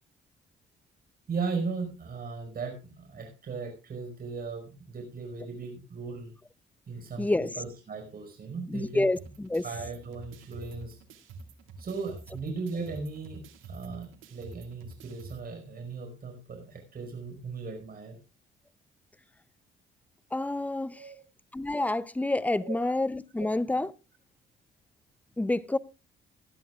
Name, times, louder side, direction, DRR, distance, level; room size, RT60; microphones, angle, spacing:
voice 1, 1.3-6.3 6.9-9.1 9.6-11.0 11.8-18.2 20.9-21.2 22.6-22.7, right 4 dB, 50° right, 5.1 m, -37 dB
voice 2, 7.2-7.5 8.7-9.2 9.4-9.6 20.3-20.9 21.5-23.9 25.4-25.8, left 2 dB, 5° left, 0.6 m, -28 dB
sound 1, 9.2-15.4, right 3 dB, 90° right, 2.1 m, -48 dB
19.0 x 12.0 x 2.4 m
cardioid pair, 90°, 20 cm